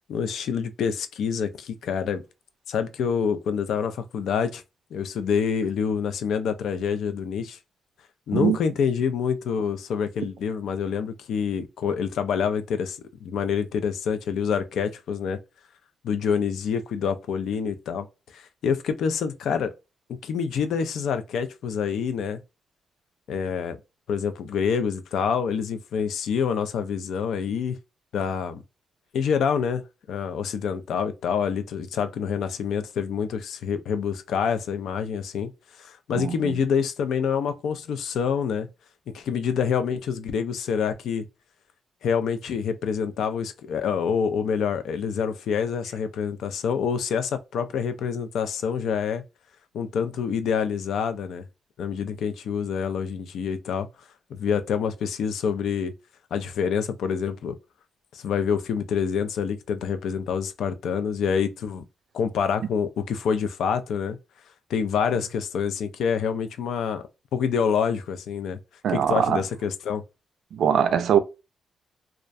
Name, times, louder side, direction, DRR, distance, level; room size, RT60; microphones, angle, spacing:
voice 1, 0.1-2.2 2.7-4.6 4.9-7.6 8.3-15.4 16.0-19.7 20.1-22.4 23.3-23.8 24.1-27.8 28.1-28.6 29.1-35.5 35.8-38.7 39.1-41.2 42.0-49.2 49.7-51.4 51.8-53.9 54.3-55.9 56.3-57.6 58.1-61.8 62.1-64.2 64.7-67.0 67.3-68.6 68.9-70.0, left 7 dB, 85° left, 0.3 m, -27 dB
voice 2, 36.2-36.5 68.8-69.4 70.5-71.2, right 8 dB, 75° right, 0.3 m, -22 dB
2.3 x 2.1 x 2.5 m
cardioid pair, 115°, 0 cm